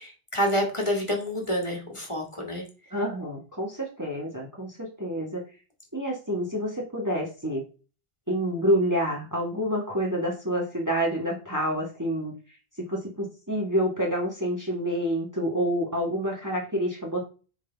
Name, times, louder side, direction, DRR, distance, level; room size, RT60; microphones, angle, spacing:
voice 1, 0.0-2.6, equal, 25° left, 0 dB, 2.2 m, -28 dB
voice 2, 2.9-5.4 5.9-7.6 8.3-12.3 12.9-17.3, equal, 15° right, -2 dB, 1.6 m, -28 dB
9.7 x 3.9 x 3.5 m, 0.35 s
omnidirectional pair, 1.1 m